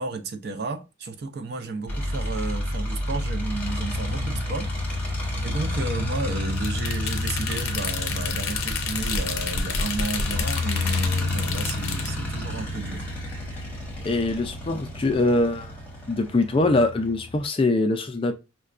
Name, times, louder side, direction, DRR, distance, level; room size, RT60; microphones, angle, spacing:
voice 1, 0.0-5.0 5.4-13.1, right 3 dB, 50° right, 0.5 m, -33 dB
sound 1, 1.9-17.5, left 1 dB, 10° left, 0.9 m, -30 dB
sound 2, 6.6-12.1, left 5 dB, 90° left, 0.6 m, -30 dB
voice 2, 14.0-15.7 16.1-18.3, left 2 dB, 25° left, 0.3 m, -23 dB
5.4 x 2.2 x 2.4 m
head